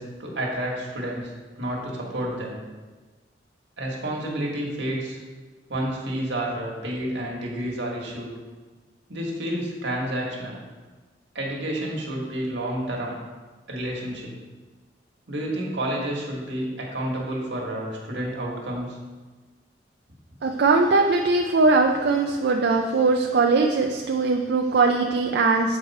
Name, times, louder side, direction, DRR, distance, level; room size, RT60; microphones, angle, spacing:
voice 1, 0.0-2.6 3.8-5.2 5.7-8.3 9.1-10.6 11.3-13.1 13.7-14.3 15.3-19.0, right 1 dB, 85° right, -2 dB, 1.6 m, -30 dB
voice 2, 20.4-25.8, right 3 dB, 65° right, 2 dB, 0.4 m, -20 dB
8.2 x 4.6 x 4.2 m, 1.3 s
head